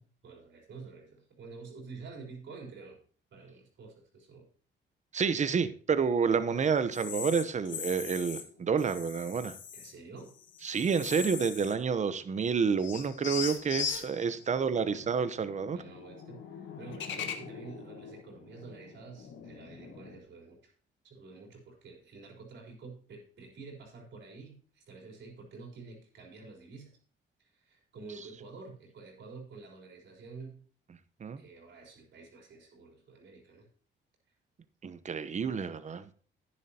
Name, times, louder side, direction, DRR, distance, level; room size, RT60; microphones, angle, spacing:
voice 1, 0.0-3.0 3.3-4.5 6.5-6.7 9.7-10.4 14.5-15.1 15.7-20.7 21.0-27.0 27.4-30.6 31.4-33.7, right 4 dB, 65° right, 0 dB, 4.0 m, -49 dB
voice 2, 5.1-9.5 10.6-15.8 31.2-31.4 34.8-36.1, right 6 dB, 35° right, 13 dB, 0.8 m, -29 dB
sound 1, 6.9-8.4 8.8-9.9 10.3-11.9 12.2-12.3 12.8-20.2, left 7 dB, 70° left, 1.4 m, -41 dB
11.0 x 9.9 x 2.8 m, 0.42 s
cardioid pair, 90°, 20 cm